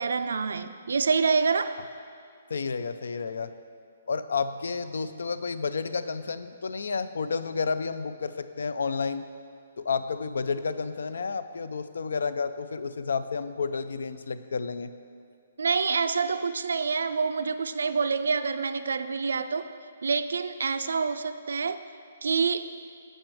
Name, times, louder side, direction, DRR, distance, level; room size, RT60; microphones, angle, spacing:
voice 1, 0.0-1.8 15.6-19.7 20.0-21.8 22.2-22.7, right 5 dB, 85° right, 11 dB, 0.3 m, -27 dB
voice 2, 2.5-3.5 4.1-9.3 9.8-14.9, left 5 dB, 85° left, 12 dB, 0.4 m, -31 dB
7.6 x 5.2 x 4.5 m, 2.2 s
hypercardioid pair, 165°, 0 cm